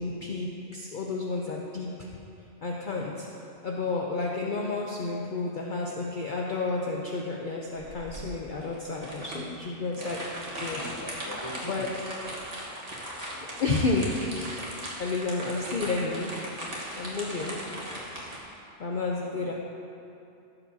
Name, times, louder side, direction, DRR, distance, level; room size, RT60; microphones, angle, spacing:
voice 1, 0.0-2.1 2.6-3.3 3.6-10.8 11.6-11.9 13.6-14.7 15.0-16.3 17.0-17.6 18.5-19.5, left 3 dB, 50° left, -2 dB, 0.7 m, -31 dB
sound 1, 7.8-18.4, right 1 dB, 30° right, 1.5 m, -38 dB
voice 2, 10.7-11.8 19.2-19.5, left 1 dB, 20° left, -2 dB, 1.0 m, -42 dB
16.0 x 6.9 x 2.8 m, 2.7 s
omnidirectional pair, 1.2 m